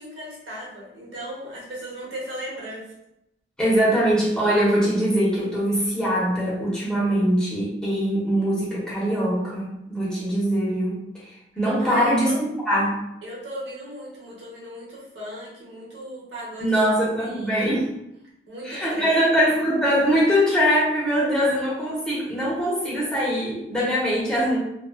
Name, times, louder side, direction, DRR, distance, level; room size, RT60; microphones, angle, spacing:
voice 1, 0.0-2.8 11.8-12.4 13.2-16.8 17.2-17.6 18.5-19.6, equal, 85° right, -6 dB, 0.9 m, -36 dB
voice 2, 3.6-11.0 11.6-13.0 16.6-17.9 18.6-24.6, equal, 5° left, -7 dB, 0.7 m, -22 dB
2.4 x 2.3 x 2.3 m, 0.84 s
head